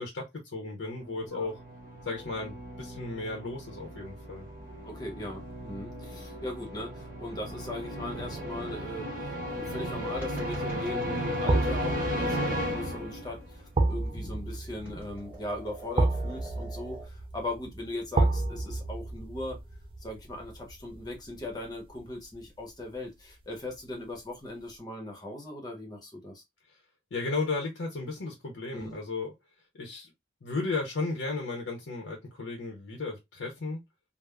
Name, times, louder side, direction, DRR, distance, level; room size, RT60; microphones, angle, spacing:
voice 1, 0.0-1.6 2.1-4.5 27.1-29.3 29.8-30.1 30.4-33.8, left 3 dB, 90° left, 0.7 m, -34 dB
sound 1, 0.9-13.5, equal, 45° right, 0.9 m, -35 dB
voice 2, 4.8-9.1 9.5-19.6 20.0-26.4 28.7-28.9, left 1 dB, 20° left, 0.8 m, -39 dB
sound 2, 9.9-10.1 11.5-22.5 22.8-22.9, right 2 dB, 30° right, 0.3 m, -31 dB
sound 3, 10.1-17.1, equal, 10° right, 1.4 m, -47 dB
3.3 x 2.0 x 2.2 m
head